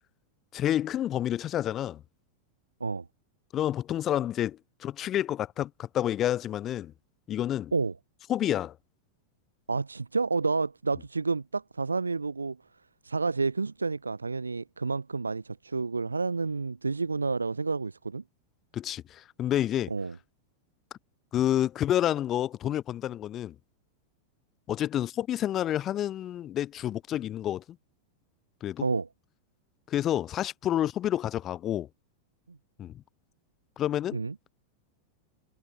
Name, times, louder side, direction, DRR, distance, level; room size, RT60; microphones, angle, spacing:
voice 1, 0.5-2.0 3.5-6.9 7.3-7.7 8.3-8.8 18.7-19.9 21.3-23.6 24.7-27.8 28.6-28.8 29.9-31.9 32.8-33.0 33.8-34.2, left 11 dB, 30° left, 0.4 m, -29 dB
voice 2, 9.7-12.6 13.0-18.2 19.9-20.2 28.8-29.1 32.5-32.6 34.1-34.3, right 4 dB, 80° right, 0.3 m, -30 dB
figure-of-eight pair, 90°, 0 cm